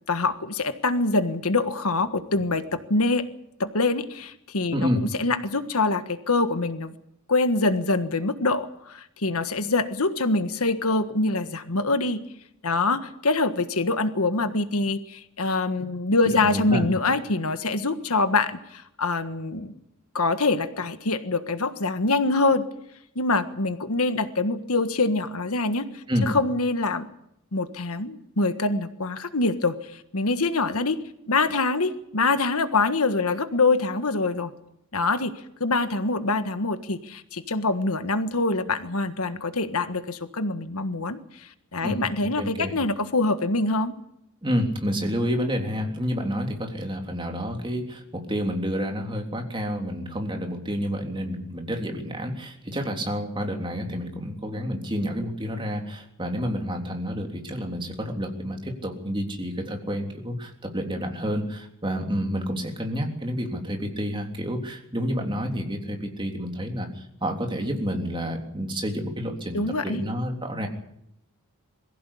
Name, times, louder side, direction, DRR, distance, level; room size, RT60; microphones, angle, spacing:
voice 1, 0.1-3.2 3.6-6.9 7.3-12.2 12.6-19.7 20.1-22.6 23.1-27.1 27.5-31.0 31.3-34.5 34.9-35.3 35.6-43.9 69.5-70.0, left 3 dB, 80° left, 10 dB, 1.6 m, -25 dB
voice 2, 4.7-5.0 16.3-16.9 26.1-26.4 41.8-42.0 42.4-42.7 44.4-70.7, equal, 20° right, 3 dB, 3.4 m, -29 dB
22.5 x 15.5 x 8.6 m, 0.78 s
head